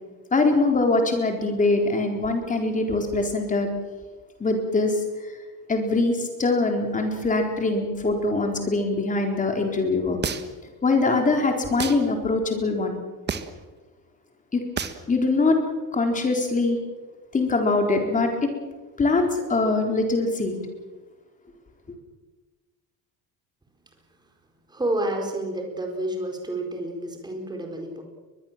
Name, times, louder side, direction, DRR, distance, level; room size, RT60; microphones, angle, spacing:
voice 1, 0.3-3.7 4.4-4.9 5.7-10.2 10.8-13.0 14.5-14.6 15.1-15.6 15.9-16.8 17.3-18.5 19.0-20.6, left 3 dB, 20° left, 3 dB, 4.1 m, -23 dB
sound 1, 10.2-10.7 11.8-12.0 13.3-13.6 14.8-15.0, right 6 dB, 25° right, 1.5 m, -29 dB
voice 2, 24.7-28.0, right 1 dB, 10° right, 2 dB, 4.5 m, -29 dB
22.0 x 22.0 x 7.5 m, 1.3 s
cardioid pair, 160°, 38 cm